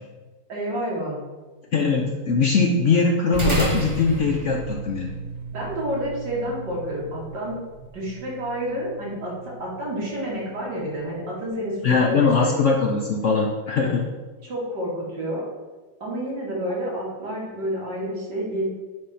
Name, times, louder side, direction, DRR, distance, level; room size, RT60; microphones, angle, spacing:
voice 1, 0.5-1.2 5.5-7.6 7.9-12.5 14.4-15.5 16.0-18.7, equal, 60° right, -5 dB, 2.7 m, -29 dB
voice 2, 1.7-5.1 11.8-14.0, left 4 dB, 75° left, 0 dB, 0.6 m, -21 dB
sound 1, 3.3-12.0, right 2 dB, 15° right, 1.6 m, -34 dB
9.7 x 3.8 x 4.2 m, 1.3 s
omnidirectional pair, 2.1 m